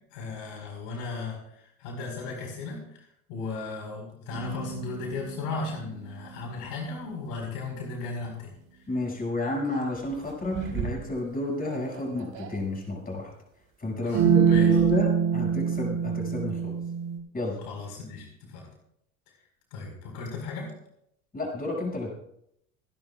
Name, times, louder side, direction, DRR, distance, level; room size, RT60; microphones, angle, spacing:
voice 1, 0.1-8.5 14.0-14.8 17.6-18.7 19.7-20.7, left 4 dB, 65° left, 0 dB, 4.9 m, -36 dB
sound 1, 4.3-6.7 9.7-9.8 10.5-11.1 11.7-12.6 14.1-17.2, right 7 dB, 45° right, 3.8 m, -26 dB
voice 2, 8.9-13.3 13.8-16.8 17.3-17.6 21.3-22.1, left 2 dB, 20° left, 0 dB, 6.8 m, -31 dB
27.0 x 11.0 x 2.5 m, 0.75 s
hypercardioid pair, 95°, 43 cm